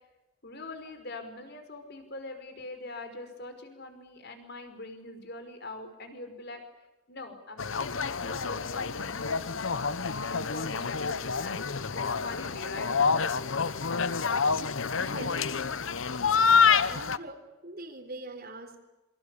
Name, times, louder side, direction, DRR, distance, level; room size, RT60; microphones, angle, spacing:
voice 1, 0.4-6.6 7.1-9.4 10.3-11.6 11.9-12.9, left 2 dB, 50° left, 8 dB, 5.2 m, -43 dB
sound 1, 7.6-17.2, left 5 dB, 65° left, 1.0 m, -27 dB
voice 2, 15.0-15.6 16.8-18.8, right 2 dB, 45° right, 4 dB, 3.9 m, -42 dB
27.5 x 25.0 x 8.5 m, 1.0 s
head